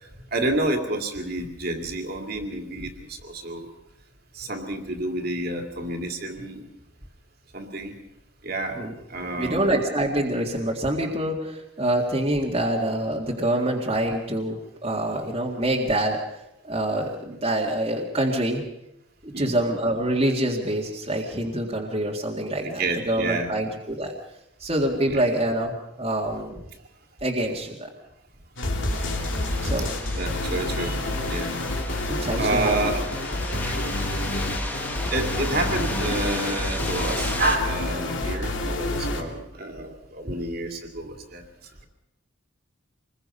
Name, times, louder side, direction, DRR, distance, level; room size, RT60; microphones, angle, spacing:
voice 1, 0.3-3.7 4.3-6.7 7.5-8.0 8.4-8.8 9.1-9.7 19.3-19.6 22.6-23.5 25.0-25.2 29.1-29.2 29.5-29.9 30.2-31.6 32.4-33.0 33.6-34.4 35.1-41.9, right 2 dB, 45° right, 4 dB, 2.5 m, -29 dB
voice 2, 9.4-16.2 16.6-18.6 19.2-24.1 24.6-26.6 27.2-27.9 29.6-29.9 32.1-32.7, right 1 dB, 30° right, -2 dB, 2.0 m, -26 dB
sound 1, 28.6-39.2, left 1 dB, 60° left, 2.9 m, -28 dB
sound 2, 28.9-37.6, left 1 dB, 10° left, 1.6 m, -35 dB
26.5 x 21.0 x 5.5 m, 0.88 s
head